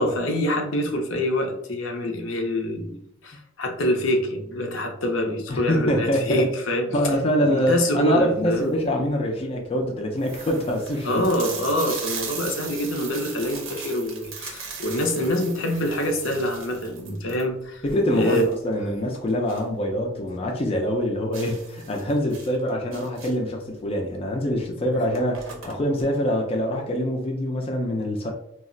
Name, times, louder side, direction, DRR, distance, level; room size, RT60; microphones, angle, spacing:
voice 1, 0.0-7.1 7.4-8.8 11.0-17.8 18.1-18.4, left 1 dB, 75° left, 3 dB, 0.6 m, -26 dB
voice 2, 5.5-6.5 6.9-11.2 17.8-28.3, equal, 30° left, 0 dB, 0.4 m, -24 dB
sound 1, 8.5-8.8 9.5-9.6 9.8-9.9 10.2-19.8 20.1-20.2 20.6-20.7 21.3-23.6 24.5-24.6 24.9-26.1, right 5 dB, 90° right, 0.7 m, -38 dB
2.3 x 2.1 x 3.7 m, 0.76 s
head